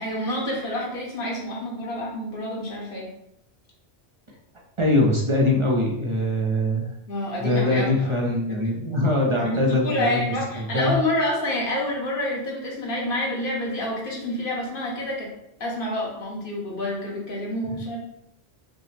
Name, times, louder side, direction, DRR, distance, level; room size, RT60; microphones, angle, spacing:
voice 1, 0.0-3.1 7.1-8.1 9.4-15.3 15.6-18.0, left 1 dB, 50° left, -3 dB, 1.2 m, -28 dB
voice 2, 4.8-6.9 7.4-10.2 10.6-10.9, left 1 dB, 45° right, -2 dB, 0.4 m, -22 dB
5.3 x 2.0 x 3.2 m, 0.80 s
omnidirectional pair, 1.2 m